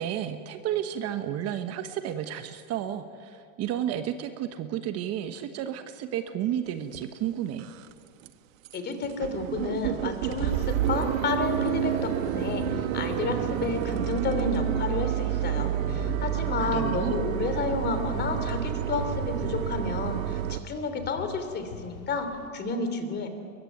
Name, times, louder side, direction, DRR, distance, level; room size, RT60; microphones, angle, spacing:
voice 1, 0.0-7.7 16.3-17.2, right 10 dB, 35° right, 8 dB, 1.3 m, -32 dB
sound 1, 6.9-7.0 7.5-7.9 8.2-8.3 8.6-8.8 9.0-20.6, right 12 dB, 65° right, 1.4 m, -29 dB
voice 2, 8.7-23.3, left 3 dB, 25° left, 8 dB, 3.2 m, -31 dB
sound 2, 10.5-22.5, left 7 dB, 75° left, 2.8 m, -43 dB
22.5 x 22.0 x 9.3 m, 2.3 s
supercardioid pair, 140°, 42 cm